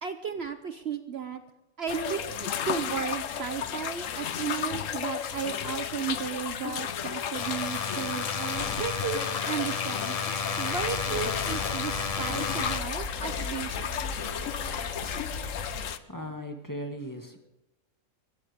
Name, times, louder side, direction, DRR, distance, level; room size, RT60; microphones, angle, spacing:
voice 1, 0.0-1.4 1.8-10.1 10.6-14.1, right 7 dB, 55° right, 8 dB, 1.0 m, -34 dB
sound 1, 1.9-16.0, left 9 dB, 70° left, 1.2 m, -34 dB
sound 2, 7.4-12.8, left 5 dB, 35° left, 0.7 m, -32 dB
Bicycle, 10.7-15.8, left 2 dB, 90° right, 6.8 m, -39 dB
voice 2, 15.9-17.4, equal, 15° left, 3 dB, 2.0 m, -38 dB
24.5 x 14.0 x 3.6 m, 0.95 s
omnidirectional pair, 1.4 m